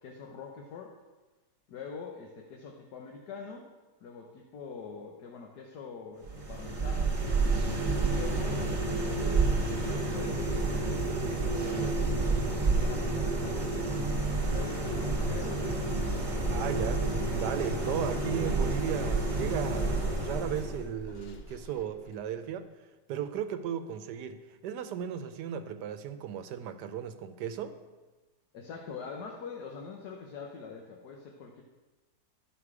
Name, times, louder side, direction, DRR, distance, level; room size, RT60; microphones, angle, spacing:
voice 1, 0.0-0.9 1.7-3.7 4.0-7.1 8.0-12.3 12.7-15.6 15.9-16.3 17.7-18.0 28.5-31.6, left 5 dB, 75° left, 1 dB, 1.5 m, -44 dB
sound 1, 6.2-20.9, right 3 dB, 25° right, 1.1 m, -29 dB
Bus / Engine starting, 14.5-22.3, left 1 dB, 55° left, 0.7 m, -41 dB
voice 2, 16.5-17.1 17.4-22.7 23.1-27.8, right 9 dB, 85° right, 9 dB, 1.3 m, -35 dB
11.5 x 5.7 x 4.8 m, 1.2 s
omnidirectional pair, 1.7 m